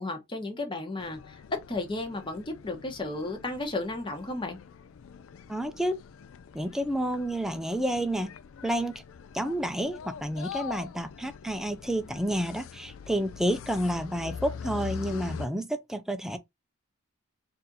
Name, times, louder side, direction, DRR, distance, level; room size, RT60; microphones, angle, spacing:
voice 1, 0.0-1.4 1.7-4.6, left 2 dB, 25° left, 1.1 m, -34 dB
sound 1, 1.0-15.5, left 6 dB, 85° left, 0.4 m, -43 dB
voice 2, 5.5-6.0 6.5-8.3 8.6-9.0 9.3-16.4, right 1 dB, ahead, 0.4 m, -30 dB
4.1 x 2.7 x 3.9 m
head